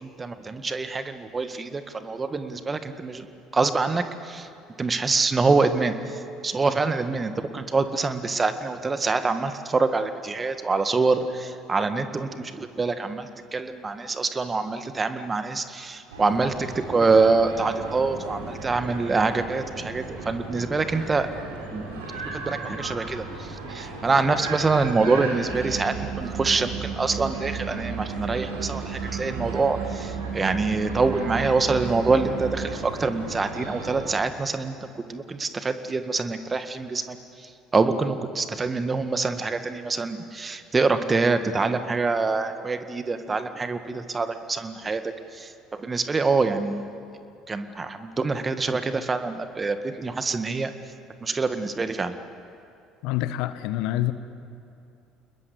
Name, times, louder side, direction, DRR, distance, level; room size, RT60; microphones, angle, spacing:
voice 1, 0.0-3.3 3.5-4.5 4.8-21.3 21.7-22.0 22.3-34.7 35.1-46.9 47.5-50.7 51.2-52.2, right 3 dB, 25° right, 9 dB, 1.9 m, -25 dB
sound 1, 16.1-34.2, right 2 dB, 75° right, 4.4 m, -37 dB
sound 2, 25.5-32.7, right 7 dB, 40° right, 7.4 m, -34 dB
voice 2, 53.0-54.1, left 14 dB, 60° left, 13 dB, 1.1 m, -26 dB
29.5 x 21.0 x 8.2 m, 2.7 s
figure-of-eight pair, 55°, 0 cm